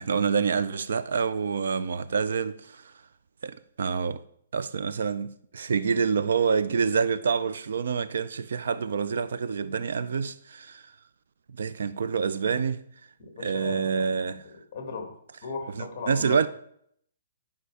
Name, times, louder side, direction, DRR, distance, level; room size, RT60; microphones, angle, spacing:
voice 1, 0.0-2.9 3.4-4.2 4.5-10.8 11.6-12.8 13.4-14.4 15.8-16.5, right 6 dB, 60° right, 0.4 m, -27 dB
voice 2, 13.4-15.1 15.4-16.4, left 4 dB, 25° left, 2.0 m, -37 dB
11.0 x 5.5 x 4.8 m
hypercardioid pair, 175°, 0 cm